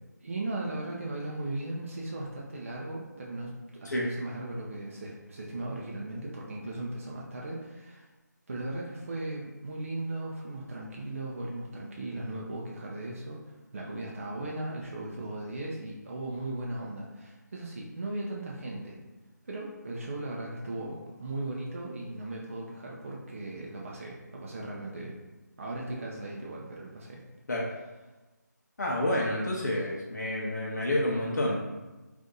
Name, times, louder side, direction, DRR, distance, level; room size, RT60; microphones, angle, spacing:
voice 1, 0.0-8.1 8.5-13.4 13.7-19.0 19.4-25.2 25.6-27.2, right 2 dB, 45° right, -3 dB, 0.5 m, -37 dB
voice 2, 28.8-31.7, left 1 dB, 65° left, -4 dB, 0.7 m, -29 dB
2.6 x 2.5 x 3.8 m, 1.2 s
figure-of-eight pair, 165°, 10 cm